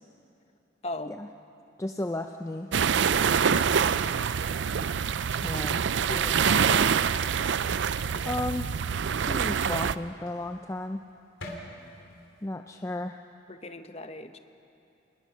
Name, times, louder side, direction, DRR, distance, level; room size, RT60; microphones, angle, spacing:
voice 1, 0.8-1.1 5.9-6.9 13.5-14.4, left 2 dB, 30° left, 8 dB, 0.9 m, -38 dB
voice 2, 1.8-2.7 5.4-5.9 6.7-6.9 8.2-8.7 9.3-11.0 12.4-13.2, left 1 dB, 15° left, 6 dB, 0.5 m, -34 dB
sound 1, 2.7-9.9, right 7 dB, 70° right, 0.5 m, -25 dB
sound 2, 7.7-12.5, left 1 dB, 80° left, 3.1 m, -52 dB
27.0 x 20.0 x 6.2 m, 2.8 s
head